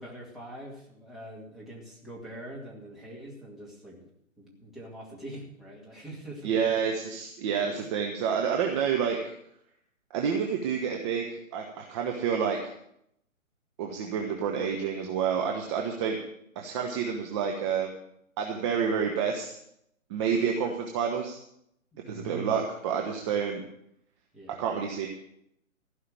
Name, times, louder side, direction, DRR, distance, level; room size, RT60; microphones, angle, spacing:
voice 1, 0.0-4.1 4.4-6.9 7.4-7.9 22.0-22.6 24.3-24.7, right 1 dB, ahead, -5 dB, 2.3 m, -43 dB
voice 2, 6.4-9.2 10.1-12.7 13.8-16.2 16.5-17.9 18.4-19.6 20.1-21.4 22.1-23.6 24.6-25.1, right 7 dB, 20° right, 1 dB, 1.1 m, -29 dB
15.5 x 5.7 x 8.9 m, 0.75 s
hypercardioid pair, 145°, 40 cm